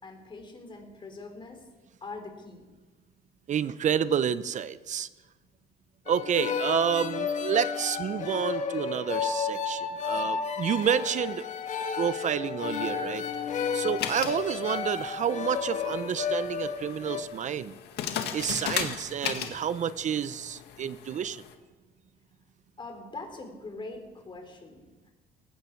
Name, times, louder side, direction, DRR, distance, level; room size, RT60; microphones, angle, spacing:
voice 1, 0.0-1.6 2.0-2.6 22.8-25.1, left 3 dB, 30° left, 4 dB, 3.6 m, -43 dB
voice 2, 3.5-5.1 6.1-11.5 11.9-13.2 13.7-17.7 18.3-21.4, right 8 dB, 45° right, 15 dB, 0.7 m, -29 dB
sound 1, 6.1-17.2, left 6 dB, 45° left, 1.6 m, -32 dB
sound 2, 12.6-21.5, left 9 dB, 75° left, 1.8 m, -38 dB
18.0 x 16.0 x 4.7 m, 1.2 s
cardioid pair, 110°, 17 cm